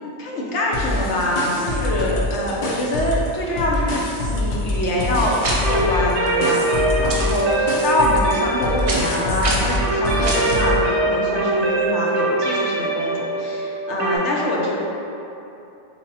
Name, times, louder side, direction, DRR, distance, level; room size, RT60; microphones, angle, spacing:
voice 1, 0.0-4.1 4.3-5.4 5.7-14.7, left 1 dB, 80° left, -3 dB, 0.9 m, -24 dB
sound 1, 0.7-3.3 3.6-10.8, left 1 dB, 55° left, 0.6 m, -25 dB
sound 2, 5.4-5.8 7.1-7.4 8.9-9.2 9.4-9.8 10.3-10.6, right 2 dB, 65° right, 0.3 m, -25 dB
sound 3, 5.6-14.2, right 2 dB, 90° right, 0.9 m, -23 dB
3.4 x 2.1 x 3.9 m, 2.8 s
omnidirectional pair, 1.1 m